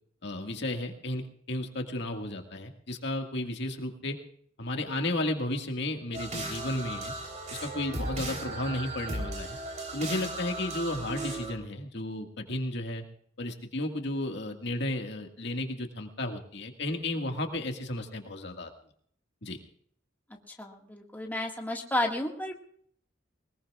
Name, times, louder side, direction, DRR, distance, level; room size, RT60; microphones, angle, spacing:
voice 1, 0.2-4.2 4.6-7.1 7.5-9.6 9.9-13.0 13.4-18.7 19.4-19.6, left 1 dB, 60° left, 4 dB, 1.9 m, -33 dB
sound 1, 6.1-11.5, right 2 dB, 40° right, 3.6 m, -36 dB
voice 2, 20.6-22.6, left 1 dB, 10° left, 1 dB, 1.8 m, -32 dB
22.0 x 20.5 x 2.4 m, 0.63 s
head